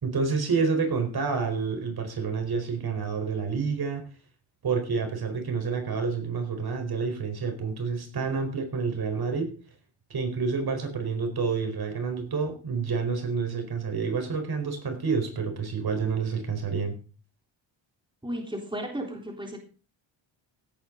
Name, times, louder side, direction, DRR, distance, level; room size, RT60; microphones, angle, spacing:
voice 1, 0.0-4.1 4.6-9.5 10.1-17.0, right 5 dB, 50° right, 5 dB, 4.7 m, -28 dB
voice 2, 18.2-19.6, right 1 dB, 10° right, 1 dB, 3.7 m, -34 dB
17.0 x 9.6 x 4.0 m, 0.37 s
cardioid pair, 95°, 48 cm